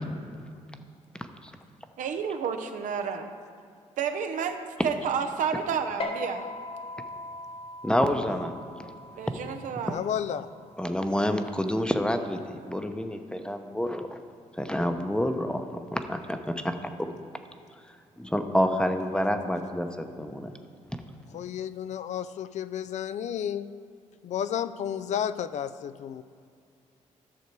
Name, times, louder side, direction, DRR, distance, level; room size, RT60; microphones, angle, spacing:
voice 1, 2.0-3.3 4.0-4.6 4.8-6.5 9.2-10.0, right 6 dB, 70° right, 6 dB, 0.8 m, -30 dB
sound 1, 6.0-12.8, left 2 dB, 45° left, 1.1 m, -41 dB
voice 2, 7.8-8.5 10.8-14.2 14.6-15.6 15.9-17.1 18.2-20.5, equal, 5° left, 7 dB, 0.8 m, -28 dB
voice 3, 9.9-10.5 21.3-23.7 24.2-26.2, left 9 dB, 60° left, 13 dB, 0.4 m, -32 dB
11.5 x 6.5 x 4.6 m, 2.4 s
supercardioid pair, 70°, 13 cm